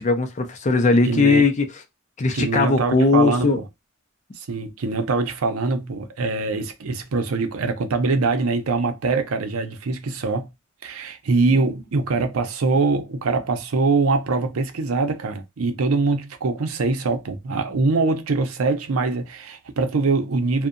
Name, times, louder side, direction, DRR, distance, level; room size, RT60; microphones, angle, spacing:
voice 1, 0.0-1.7 2.2-3.6, left 3 dB, 35° left, 0.5 m, -19 dB
voice 2, 1.0-1.4 2.3-3.7 4.4-10.5 10.8-20.7, right 3 dB, 80° right, 0.6 m, -23 dB
2.7 x 2.1 x 2.5 m
head